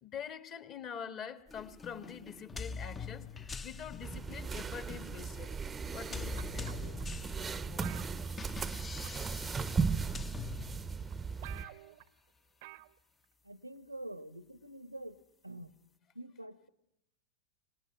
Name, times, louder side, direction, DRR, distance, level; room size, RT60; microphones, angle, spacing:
voice 1, 0.0-5.6 5.9-6.7 7.4-7.9 11.6-11.8, left 7 dB, 35° left, 11 dB, 1.9 m, -45 dB
sound 1, 1.5-11.4, left 5 dB, 15° left, 0.9 m, -45 dB
sound 2, 4.0-11.6, right 5 dB, 15° right, 0.9 m, -37 dB
sound 3, 6.4-7.0 7.8-8.8 9.0-9.3 10.2-10.3 10.8-10.9 11.1-11.2 11.4-12.1 12.6-12.9 13.2-13.3, right 20 dB, 50° right, 0.9 m, -50 dB
voice 2, 13.4-15.2 15.4-15.7 16.1-16.7, right 1 dB, 90° right, 15 dB, 1.3 m, -46 dB
27.0 x 19.5 x 9.5 m, 0.82 s
figure-of-eight pair, 90°, 0 cm